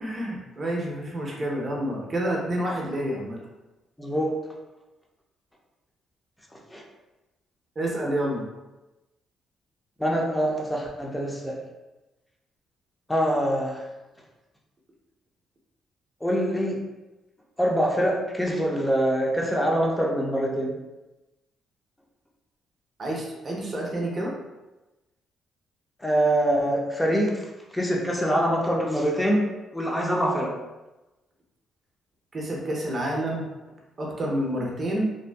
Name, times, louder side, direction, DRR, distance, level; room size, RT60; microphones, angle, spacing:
voice 1, 0.0-3.4 7.8-8.4 23.0-24.3 32.3-33.5 34.0-35.0, right 1 dB, 35° right, -2 dB, 0.6 m, -29 dB
voice 2, 4.0-4.4 6.5-6.8 10.0-11.6 13.1-13.9 16.2-16.8 17.6-20.7 26.0-27.5 27.7-30.6, equal, 10° left, -1 dB, 0.5 m, -24 dB
2.6 x 2.2 x 2.2 m, 1.1 s
cardioid pair, 90°, 0 cm